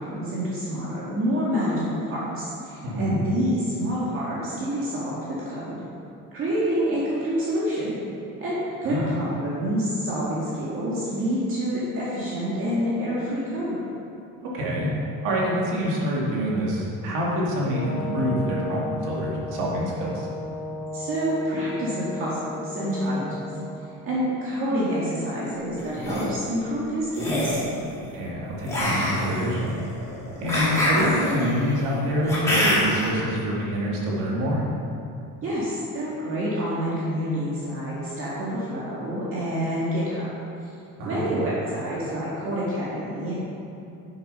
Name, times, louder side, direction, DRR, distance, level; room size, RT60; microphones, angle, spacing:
voice 1, 0.0-5.8 6.3-8.0 8.4-13.8 20.9-23.4 24.0-27.6 35.4-40.3 41.0-43.3, equal, 35° right, -8 dB, 2.0 m, -27 dB
voice 2, 2.8-3.2 8.8-9.1 14.4-14.9 15.2-20.3 28.1-29.7 30.4-34.6 41.0-41.2, equal, 60° right, -4 dB, 2.5 m, -26 dB
Brass instrument, 17.7-23.8, left 1 dB, 65° left, 2.5 m, -34 dB
sound 1, 25.8-26.2 27.1-27.7 28.7-33.1, left 1 dB, 10° left, 2.7 m, -25 dB
11.0 x 6.7 x 5.6 m, 2.7 s
cardioid pair, 170°, 36 cm